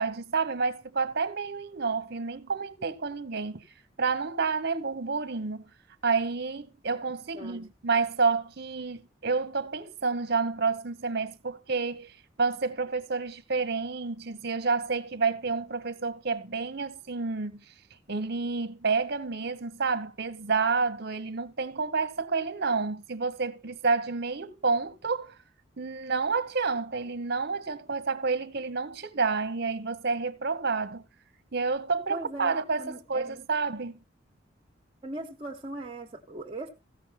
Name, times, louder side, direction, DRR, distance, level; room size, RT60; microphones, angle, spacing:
voice 1, 0.0-3.6 4.0-5.7 6.0-12.1 12.4-17.6 18.1-25.3 25.8-31.0 31.5-34.0, right 4 dB, 55° right, 1.1 m, -29 dB
voice 2, 7.3-7.6 32.1-33.4 35.0-36.7, right 2 dB, 30° right, 1.4 m, -39 dB
15.5 x 6.0 x 5.8 m
head